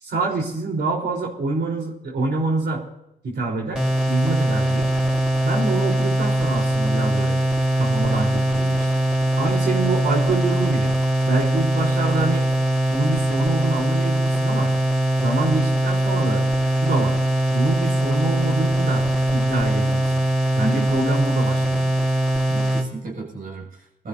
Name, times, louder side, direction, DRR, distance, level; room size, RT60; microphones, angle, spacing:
voice 1, 0.0-2.8 3.2-3.8 4.1-4.9 5.4-7.4 7.8-8.9 9.4-10.9 11.2-12.5 12.9-14.7 15.2-16.4 16.8-17.1 17.5-19.1 19.3-20.2 20.5-21.8, right 3 dB, 75° right, -1 dB, 4.2 m, -26 dB
sound 1, 3.8-22.9, right 1 dB, 5° right, 4.3 m, -21 dB
voice 2, 20.6-20.9 22.5-24.1, right 4 dB, 55° right, -2 dB, 7.2 m, -34 dB
22.0 x 14.0 x 2.8 m, 0.83 s
cardioid pair, 75°, 17 cm